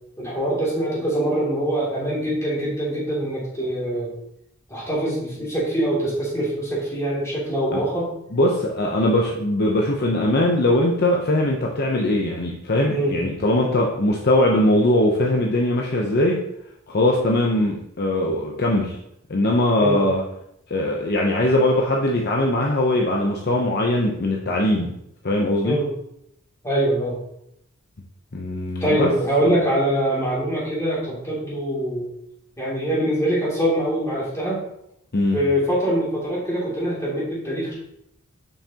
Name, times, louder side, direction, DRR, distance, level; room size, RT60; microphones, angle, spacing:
voice 1, 0.2-4.1 4.7-8.1 12.9-13.1 19.8-20.0 25.6-25.9 26.6-27.2 28.8-32.1 32.6-34.6 35.3-37.7, right 1 dB, 15° left, -7 dB, 2.6 m, -23 dB
voice 2, 8.3-16.4 16.9-19.0 19.3-20.2 20.7-24.9 25.2-25.8 28.3-29.1 35.1-35.4, left 1 dB, 50° left, -1 dB, 0.7 m, -21 dB
7.2 x 5.7 x 2.9 m, 0.77 s
head